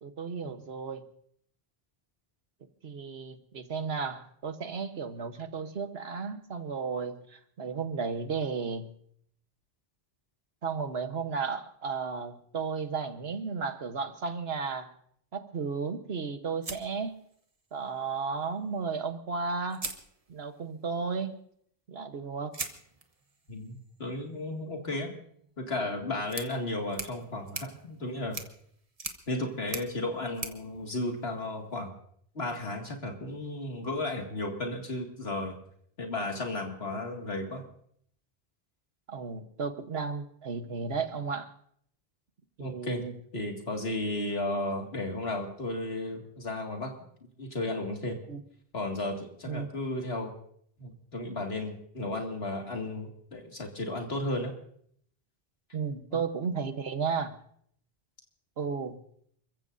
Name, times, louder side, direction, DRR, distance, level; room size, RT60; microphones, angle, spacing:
voice 1, 0.0-1.0 2.8-8.9 10.6-14.9 15.3-17.2 17.7-19.9 20.3-21.4 21.9-22.5 39.1-41.5 42.6-43.2 48.3-48.4 49.5-49.7 55.7-57.4 58.6-59.0, right 5 dB, 80° right, 9 dB, 1.4 m, -34 dB
sound 1, 16.6-17.8 19.1-19.2 19.7-20.7 22.5-31.7, right 3 dB, 35° right, 1.3 m, -43 dB
voice 2, 23.5-25.1 25.6-28.4 29.3-31.9 32.3-35.6 36.0-37.6 42.6-43.0 43.3-46.9 47.4-48.2 48.7-50.3 50.8-54.5, left 2 dB, 75° left, 2 dB, 2.5 m, -34 dB
29.5 x 15.0 x 2.7 m, 0.67 s
omnidirectional pair, 1.0 m